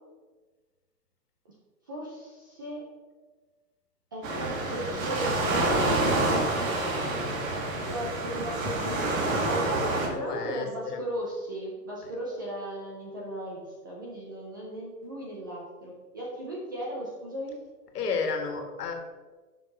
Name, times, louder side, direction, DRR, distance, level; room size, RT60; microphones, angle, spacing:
voice 1, 1.9-2.9 4.1-5.8 7.8-17.6, right 1 dB, 15° right, -4 dB, 0.4 m, -36 dB
Waves surf, 4.2-10.1, right 2 dB, 55° right, 2.2 m, -27 dB
voice 2, 10.1-11.0 12.0-12.1 17.9-18.9, left 5 dB, 70° left, 4 dB, 1.8 m, -32 dB
6.6 x 6.0 x 5.3 m, 1.3 s
hypercardioid pair, 150°, 48 cm